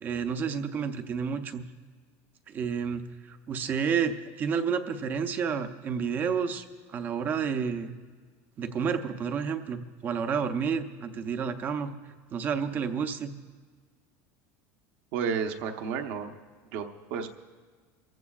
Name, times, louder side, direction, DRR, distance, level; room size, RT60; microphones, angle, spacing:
voice 1, 0.0-1.7 2.5-7.9 8.6-11.9 12.3-13.3, right 6 dB, 25° right, 8 dB, 0.6 m, -30 dB
voice 2, 15.1-16.4 16.7-17.3, right 6 dB, 55° right, 5 dB, 1.0 m, -32 dB
24.0 x 15.5 x 2.4 m, 1.5 s
cardioid pair, 170°, 8 cm